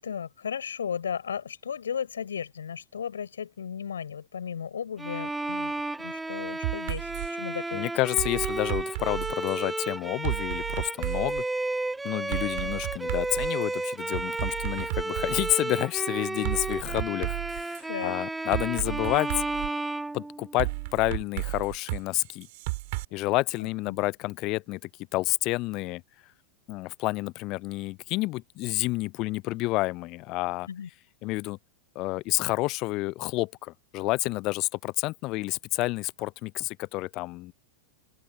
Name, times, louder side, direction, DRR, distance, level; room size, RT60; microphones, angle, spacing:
voice 1, 0.0-5.7 6.0-7.9 12.6-12.7 17.9-18.2 23.6-24.0 30.7-30.9, left 7 dB, 70° left, 6.3 m, -35 dB
Bowed string instrument, 5.0-20.9, right 2 dB, 5° right, 1.9 m, -33 dB
sound 1, 6.6-7.3 8.2-9.6 10.2-11.4 12.3-13.6 14.1-15.5 16.4-17.8 18.5-19.7 20.6-23.0, right 24 dB, 50° right, 4.6 m, -33 dB
voice 2, 7.7-11.4 12.0-19.3 20.1-22.5 23.1-24.8 25.1-26.0 26.7-30.7 31.2-31.6 31.9-37.5, left 21 dB, 40° left, 1.0 m, -29 dB
open air
figure-of-eight pair, 90°, 0 cm